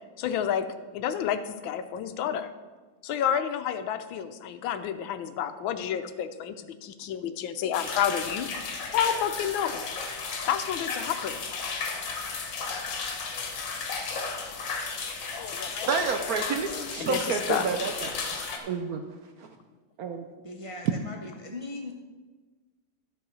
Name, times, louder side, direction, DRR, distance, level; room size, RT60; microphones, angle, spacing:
voice 1, 0.2-0.7 0.9-2.5 3.0-8.5 8.9-9.8 10.5-11.4 15.4-15.9 16.2-16.3 16.6-17.7, left 9 dB, 85° left, 10 dB, 1.5 m, -30 dB
sound 1, 7.7-18.6, left 4 dB, 70° left, 1.8 m, -34 dB
voice 2, 15.9-19.0 19.4-19.5 20.0-20.3, right 5 dB, 70° right, 6 dB, 0.9 m, -30 dB
voice 3, 20.4-22.0, left 2 dB, 35° right, 0 dB, 0.5 m, -39 dB
12.5 x 4.8 x 6.2 m, 1.3 s
omnidirectional pair, 2.1 m